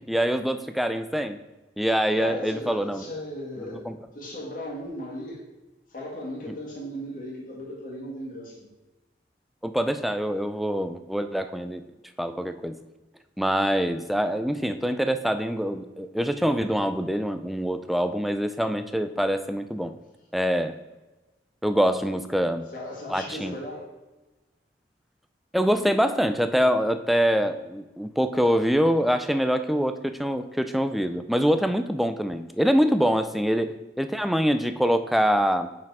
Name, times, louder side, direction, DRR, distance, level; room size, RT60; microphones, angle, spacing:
voice 1, 0.0-1.4 1.8-3.0 3.9-4.0 9.6-11.8 12.2-12.8 13.4-19.9 20.3-20.8 21.6-22.7 23.1-23.6 25.5-35.7, equal, ahead, 8 dB, 0.3 m, -24 dB
voice 2, 2.1-5.4 5.9-8.7 22.7-23.9, left 1 dB, 50° left, -2 dB, 1.9 m, -37 dB
5.9 x 4.7 x 4.7 m, 1.1 s
head